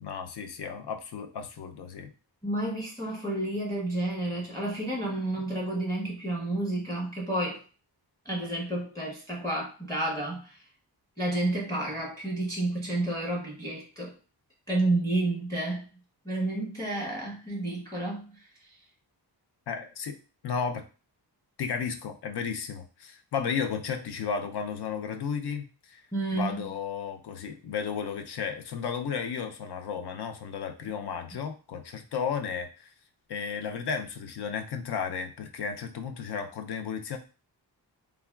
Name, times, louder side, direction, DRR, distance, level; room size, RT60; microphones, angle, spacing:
voice 1, 0.0-2.1 19.7-20.2 20.4-20.8 21.6-26.0 26.3-32.9 33.3-37.2, left 6 dB, 65° left, 6 dB, 0.5 m, -33 dB
voice 2, 2.4-7.6 8.2-10.6 11.2-14.2 14.7-15.9 16.2-18.8 26.1-26.6, right 2 dB, 10° left, -3 dB, 0.7 m, -30 dB
3.3 x 2.2 x 2.2 m, 0.35 s
wide cardioid pair, 140°, 44 cm